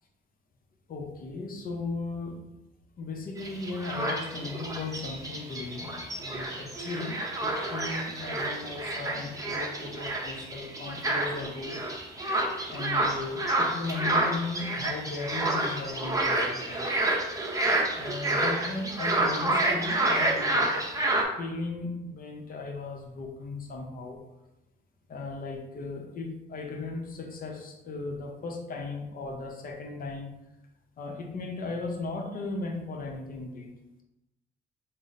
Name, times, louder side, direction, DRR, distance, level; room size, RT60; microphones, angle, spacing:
voice 1, 0.9-2.5 3.0-11.8 12.7-16.9 17.9-20.7 21.4-24.2 25.1-30.3 31.0-33.7, left 3 dB, 45° left, 3 dB, 0.7 m, -36 dB
sound 1, 3.4-21.2, right 2 dB, 15° right, 0.7 m, -29 dB
3.8 x 2.0 x 4.0 m, 0.94 s
cardioid pair, 90°, 20 cm